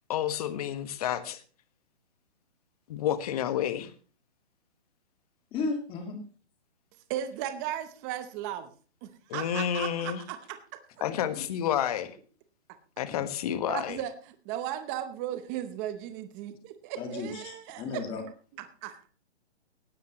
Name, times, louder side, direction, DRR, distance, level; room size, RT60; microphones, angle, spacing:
voice 1, 0.1-1.4 2.9-3.9 9.3-10.2 11.0-12.2 13.0-14.0, left 10 dB, 35° left, 12 dB, 1.4 m, -30 dB
voice 2, 5.5-6.2 11.1-11.4 13.1-13.2 17.0-18.2, left 4 dB, 15° left, 5 dB, 2.0 m, -35 dB
voice 3, 7.1-8.7 9.0-10.6 13.7-18.0 18.6-19.1, right 11 dB, 15° right, 10 dB, 0.7 m, -36 dB
18.0 x 12.5 x 3.0 m, 0.38 s
hypercardioid pair, 160°, 33 cm